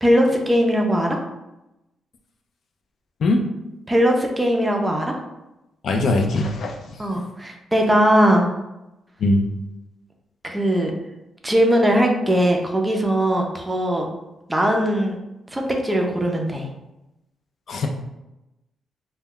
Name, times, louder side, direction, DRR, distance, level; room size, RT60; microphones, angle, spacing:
voice 1, 0.0-1.2 3.9-5.2 7.0-8.5 10.4-10.9 11.4-14.1 14.5-15.2 15.5-16.7, equal, 10° right, 2 dB, 0.4 m, -19 dB
voice 2, 5.8-6.8 7.1-7.2 9.2-9.4 17.7-17.9, left 2 dB, 55° left, 4 dB, 0.3 m, -20 dB
2.2 x 2.1 x 3.6 m, 0.94 s
cardioid pair, 115°, 0 cm